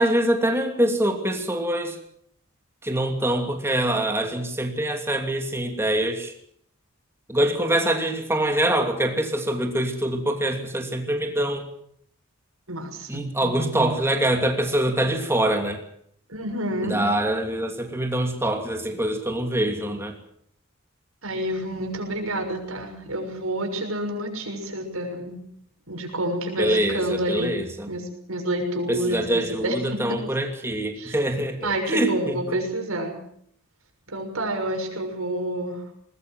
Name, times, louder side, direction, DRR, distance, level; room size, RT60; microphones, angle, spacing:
voice 1, 0.0-2.0 2.8-6.3 7.3-11.7 13.1-15.8 16.8-20.2 26.6-27.9 28.9-32.4, right 1 dB, 10° right, 4 dB, 2.9 m, -24 dB
voice 2, 12.7-14.0 16.3-17.0 21.2-25.4 25.9-27.5 27.9-30.0 31.0-31.2 31.6-33.2 34.1-35.8, right 1 dB, 90° right, 3 dB, 6.5 m, -29 dB
20.5 x 20.0 x 7.7 m, 0.67 s
head